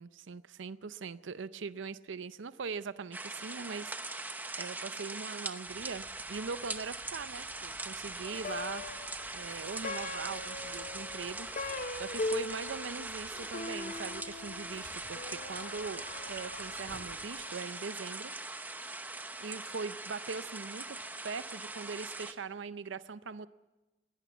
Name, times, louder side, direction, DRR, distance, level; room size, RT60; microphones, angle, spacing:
voice 1, 0.0-8.8 9.3-11.5 12.0-18.3 19.4-21.0 21.2-23.5, right 5 dB, 85° right, 14 dB, 0.6 m, -41 dB
sound 1, 3.1-22.3, right 2 dB, 10° right, 0.8 m, -41 dB
local train - stops - exiting into railway station, 5.6-17.4, equal, 25° left, 3.3 m, -59 dB
Plucked string instrument, 8.2-17.7, left 3 dB, 45° left, 0.7 m, -41 dB
21.5 x 17.0 x 7.1 m, 1.1 s
head